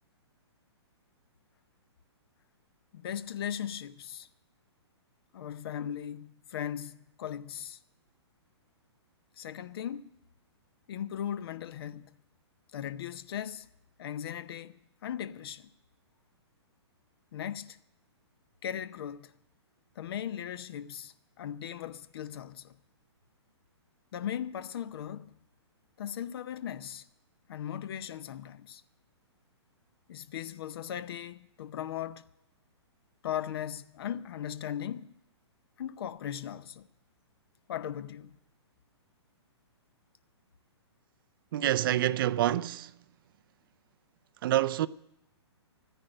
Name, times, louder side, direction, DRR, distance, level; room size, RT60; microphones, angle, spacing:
voice 1, 2.9-4.3 5.3-7.8 9.4-10.1 10.9-12.1 12.7-13.7 14.0-15.6 17.3-17.8 18.6-19.3 20.0-22.7 24.1-25.3 26.0-27.0 27.5-28.8 30.1-32.2 33.2-35.1 35.8-36.8 37.7-38.3, left 10 dB, 55° left, 0.7 m, -38 dB
voice 2, 41.5-42.9 44.4-44.9, right 13 dB, 50° right, 0.5 m, -27 dB
13.5 x 10.5 x 7.8 m
hypercardioid pair, 130°, 15 cm